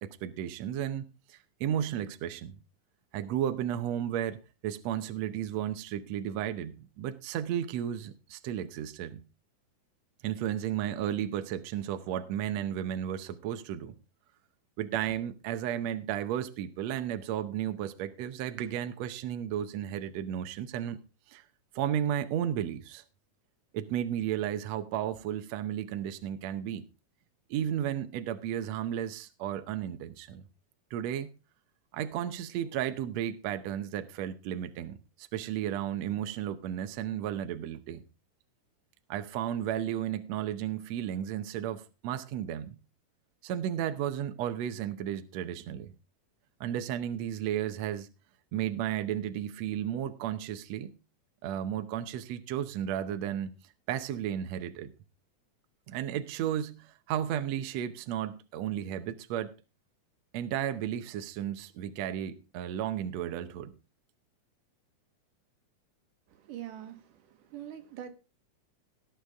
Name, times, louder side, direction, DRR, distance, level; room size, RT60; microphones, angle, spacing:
voice 1, 0.0-2.6 3.1-9.2 10.2-14.0 14.8-21.0 21.3-21.4 21.8-23.0 23.7-26.9 27.5-30.4 30.9-31.3 31.9-38.0 39.1-42.8 43.4-45.9 46.6-48.1 48.5-50.9 51.4-53.6 53.9-54.9 55.9-59.5 60.3-63.7, right 10 dB, 70° right, 1.8 m, -33 dB
voice 2, 66.3-68.1, right 11 dB, 85° right, 2.9 m, -44 dB
18.0 x 8.2 x 3.5 m
omnidirectional pair, 3.6 m